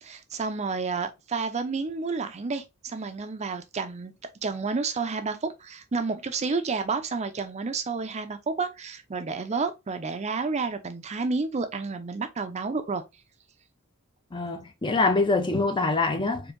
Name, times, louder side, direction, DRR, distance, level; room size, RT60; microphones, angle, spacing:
voice 1, 0.0-4.1 4.4-13.0, right 4 dB, 30° right, 0.5 m, -30 dB
voice 2, 14.3-16.5, left 3 dB, 20° left, 0.5 m, -24 dB
4.4 x 2.7 x 2.5 m
head